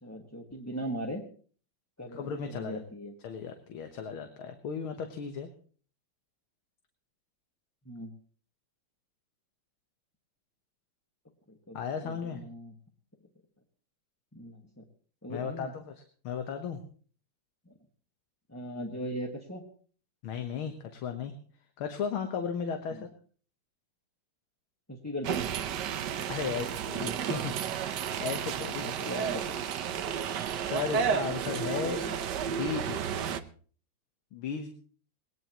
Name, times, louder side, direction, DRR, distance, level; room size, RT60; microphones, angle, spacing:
voice 1, 0.0-1.2 2.0-3.1 7.8-8.1 11.5-12.7 14.3-14.8 15.2-15.7 17.6-17.7 18.5-19.6 22.9-23.0 24.9-25.5 28.7-29.6 31.5-32.2, equal, 10° left, -1 dB, 1.2 m, -39 dB
voice 2, 2.1-2.8 3.2-5.5 11.7-12.4 15.3-15.9 16.2-16.8 20.2-21.3 21.8-23.1 26.3-27.5 27.9-28.9 30.6-32.0 32.5-33.0 34.3-34.7, left 6 dB, 75° left, 6 dB, 2.0 m, -35 dB
sound 1, 25.2-33.4, right 8 dB, 60° right, 1.3 m, -32 dB
21.0 x 18.5 x 3.0 m, 0.43 s
omnidirectional pair, 2.4 m